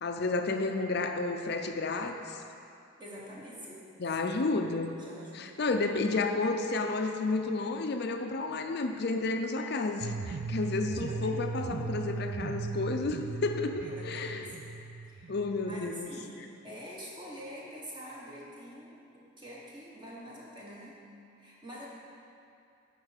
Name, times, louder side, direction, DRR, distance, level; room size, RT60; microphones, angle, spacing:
voice 1, 0.0-2.4 4.0-4.9 5.3-14.5 15.3-16.1, left 3 dB, 50° left, 5 dB, 0.5 m, -31 dB
voice 2, 3.0-3.9 4.2-4.3 5.0-5.6 10.8-11.4 13.8-14.5 15.0-15.4 15.7-21.0 21.4-21.9, equal, 20° right, -5 dB, 1.2 m, -46 dB
sound 1, 10.0-16.0, right 4 dB, 55° right, 0.4 m, -38 dB
9.9 x 4.5 x 6.5 m, 2.5 s
head